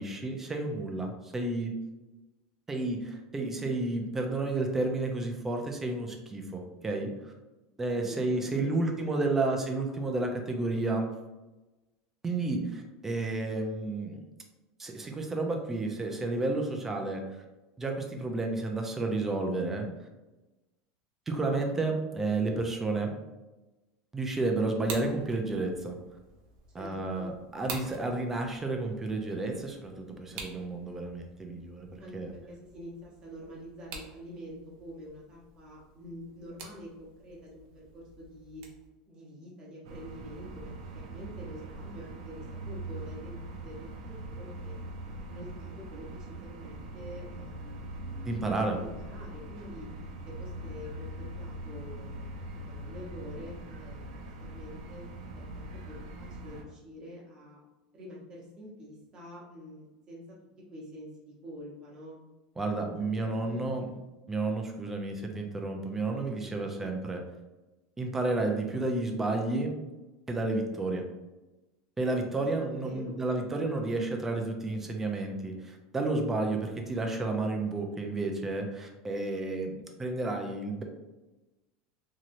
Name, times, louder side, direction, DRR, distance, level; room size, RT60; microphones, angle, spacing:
voice 1, 0.0-1.7 2.7-7.3 7.8-11.1 12.2-14.2 14.8-17.2 17.8-19.9 21.3-23.1 24.1-26.0 26.7-31.9 32.1-32.3 48.2-48.8 62.6-63.9 64.3-67.2 68.0-69.7 70.3-71.0 72.0-80.8, right 2 dB, 10° right, 2 dB, 0.4 m, -31 dB
voice 2, 8.8-9.6 26.7-27.4 32.0-38.6 39.1-44.8 45.3-48.5 48.8-49.9 50.3-52.2 52.5-55.1 55.3-57.6 57.9-62.2 62.7-62.8 63.3-63.6 66.2-67.0 72.4-73.3, equal, 25° right, -4 dB, 1.0 m, -47 dB
sound 1, 24.7-38.9, right 4 dB, 50° right, 0.6 m, -48 dB
sound 2, 39.8-56.6, right 1 dB, 85° right, 0.6 m, -42 dB
3.0 x 2.8 x 2.5 m, 1.1 s
supercardioid pair, 160°, 3 cm